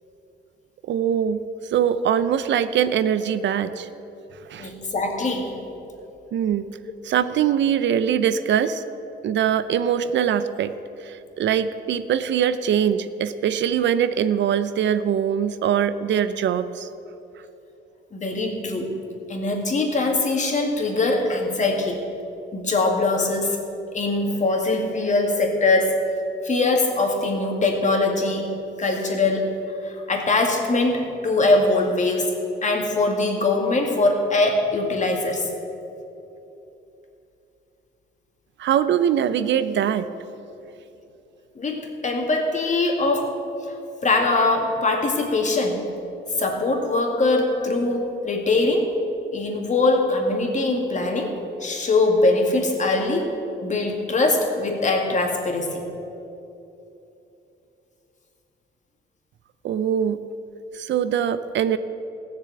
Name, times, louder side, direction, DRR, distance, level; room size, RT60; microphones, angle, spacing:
voice 1, 0.9-1.4 1.7-3.9 4.5-4.7 6.3-6.7 7.0-8.8 9.2-10.7 11.0-16.9 38.6-40.1 59.6-60.2 60.7-61.8, right 9 dB, 65° right, 13 dB, 0.6 m, -22 dB
voice 2, 4.6-5.5 18.1-18.9 19.3-22.0 22.5-23.6 23.9-26.0 26.4-28.5 28.8-32.3 32.6-35.5 41.6-43.3 43.7-43.8 44.0-45.8 46.4-48.9 49.3-51.3 51.6-53.3 53.6-55.8, left 2 dB, 35° left, 2 dB, 2.3 m, -22 dB
16.0 x 6.9 x 8.1 m, 2.9 s
cardioid pair, 90°, 20 cm